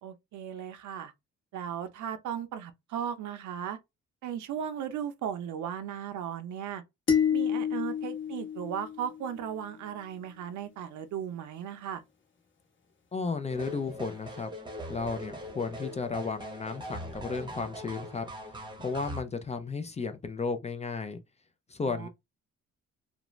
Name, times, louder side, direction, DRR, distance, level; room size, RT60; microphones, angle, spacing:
voice 1, 0.0-1.1 1.5-3.8 4.2-6.8 7.3-12.0 21.8-22.1, right 9 dB, 75° right, 0.6 m, -36 dB
sound 1, 7.1-9.5, left 8 dB, 40° left, 0.9 m, -29 dB
voice 2, 13.1-14.5 14.9-18.3 18.8-21.2 21.7-22.1, left 4 dB, 25° left, 0.4 m, -34 dB
sound 2, 13.5-19.2, equal, 15° right, 0.8 m, -41 dB
2.4 x 2.1 x 3.0 m
cardioid pair, 90°, 30 cm